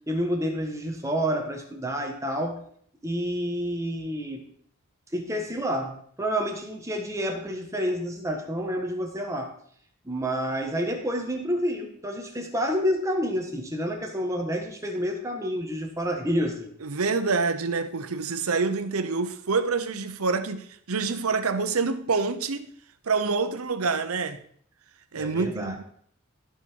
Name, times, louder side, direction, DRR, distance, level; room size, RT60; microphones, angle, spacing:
voice 1, 0.1-2.6 3.0-4.4 5.1-9.5 10.0-16.7 25.2-25.7, equal, 15° right, 1.6 m, -29 dB
voice 2, 16.8-22.7 23.0-24.4 25.1-25.8, right 4 dB, 85° right, 0.8 m, -27 dB
15.0 x 5.7 x 4.7 m
head